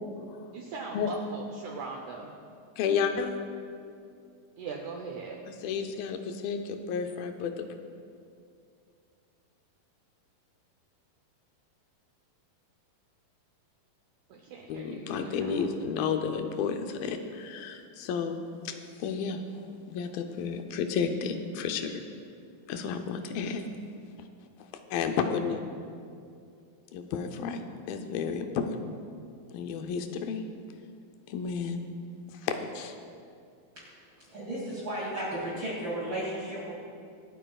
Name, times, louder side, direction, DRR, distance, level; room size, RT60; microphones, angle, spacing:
voice 1, 0.5-2.4 4.6-5.4 14.3-15.7, right 4 dB, 90° right, 1 dB, 1.6 m, -40 dB
voice 2, 2.8-3.4 5.5-7.7 14.7-19.4 19.9-22.0 22.7-23.6 24.2-24.3 24.9-25.6 26.9-28.9 29.5-30.4 31.3-31.8 32.3-33.0, left 6 dB, 80° left, 6 dB, 2.3 m, -32 dB
voice 3, 34.2-36.7, right 1 dB, 35° right, -9 dB, 2.7 m, -34 dB
26.0 x 8.9 x 2.4 m, 2.4 s
omnidirectional pair, 4.4 m